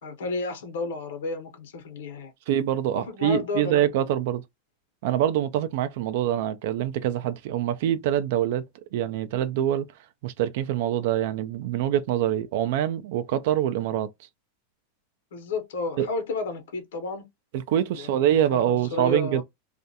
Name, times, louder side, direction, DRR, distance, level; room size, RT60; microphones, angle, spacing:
voice 1, 0.0-2.3 2.9-3.8 15.3-17.3 17.9-19.4, left 3 dB, 85° left, 0.9 m, -32 dB
voice 2, 2.5-4.4 5.0-8.7 8.9-9.9 10.2-14.1 16.0-16.1 17.5-19.4, right 11 dB, 60° right, 0.3 m, -25 dB
2.4 x 2.2 x 2.7 m
supercardioid pair, 155°, 0 cm